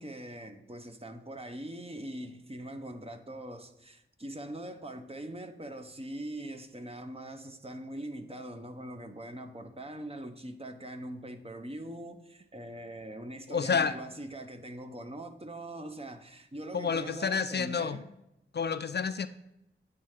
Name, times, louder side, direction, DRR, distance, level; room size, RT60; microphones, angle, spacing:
voice 1, 0.0-18.0, right 1 dB, 30° right, 0.8 m, -42 dB
voice 2, 13.5-13.9 16.7-18.0 18.5-19.3, left 6 dB, 55° left, 0.4 m, -29 dB
8.7 x 3.3 x 4.9 m
cardioid pair, 45°, 21 cm